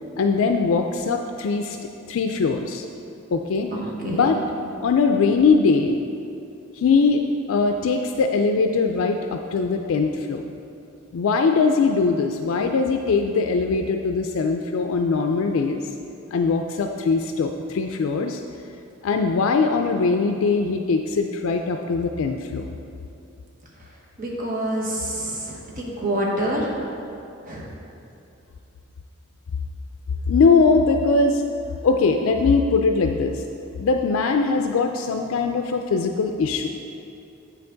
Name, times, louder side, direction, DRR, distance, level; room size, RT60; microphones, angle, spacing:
voice 1, 0.2-1.8 2.1-2.8 3.3-3.7 4.1-4.4 4.8-6.0 6.7-7.2 7.5-10.4 11.1-15.8 16.3-18.4 19.0-22.7 30.3-31.4 31.8-33.4 33.8-36.7, left 4 dB, 80° left, 4 dB, 0.4 m, -21 dB
voice 2, 3.7-4.3 24.2-26.7 27.4-27.7, right 1 dB, 40° right, -3 dB, 1.2 m, -27 dB
8.2 x 5.8 x 3.9 m, 2.7 s
head